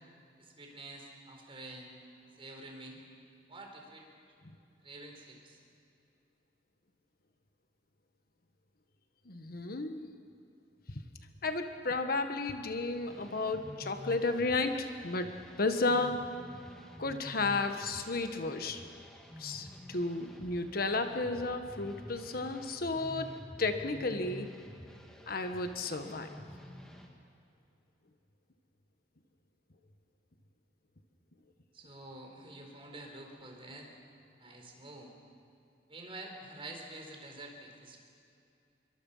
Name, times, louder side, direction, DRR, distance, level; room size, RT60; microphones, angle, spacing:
voice 1, 0.4-1.9 2.4-3.0 3.5-4.1 4.8-5.6 31.7-33.9 34.4-35.1 35.9-38.0, right 2 dB, 30° right, 1 dB, 4.1 m, -48 dB
voice 2, 9.2-10.1 10.9-11.0 11.4-16.3 17.0-18.9 19.4-23.3 23.6-24.5 25.3-26.3, left 3 dB, 55° left, 7 dB, 1.4 m, -33 dB
sound 1, 13.1-27.1, equal, 5° left, 2.4 m, -49 dB
26.5 x 23.0 x 5.7 m, 2.6 s
head